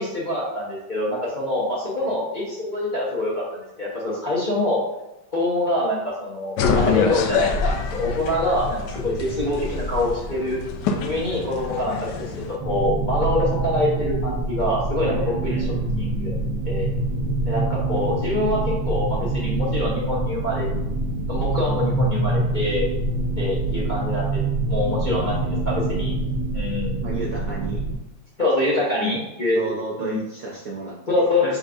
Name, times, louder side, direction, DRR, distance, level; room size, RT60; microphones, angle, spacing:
voice 1, 0.0-4.8 5.3-8.8 9.0-10.6 11.0-12.3 12.6-16.4 16.6-16.9 17.5-20.7 21.3-22.9 23.3-26.1 26.5-27.0 28.4-29.6 30.0-30.2 31.1-31.6, left 1 dB, 35° left, -8 dB, 0.8 m, -25 dB
sound 1, 6.6-12.6, left 4 dB, 75° left, 1.1 m, -25 dB
sound 2, 12.6-27.9, right 2 dB, 85° right, 1.7 m, -25 dB
voice 2, 15.1-15.9 27.0-27.8 29.0-29.2 29.5-31.3, right 3 dB, 65° right, -2 dB, 0.8 m, -33 dB
6.4 x 3.4 x 2.4 m, 0.96 s
omnidirectional pair, 2.1 m